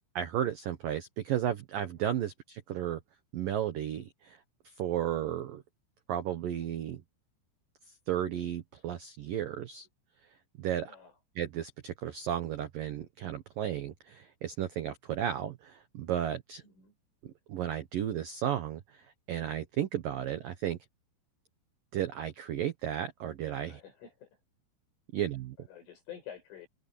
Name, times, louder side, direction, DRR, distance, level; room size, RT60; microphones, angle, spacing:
voice 1, 0.2-3.0 3.3-4.4 4.8-5.6 6.1-7.0 8.1-9.9 10.6-11.0 11.4-16.6 17.5-20.8 21.9-23.8 25.1-25.6, right 10 dB, 70° right, 2.2 m, -34 dB
voice 2, 10.9-11.2 16.6-16.9 23.7-24.3 25.6-26.7, left 9 dB, 75° left, 10.5 m, -49 dB
open air
omnidirectional pair, 5.7 m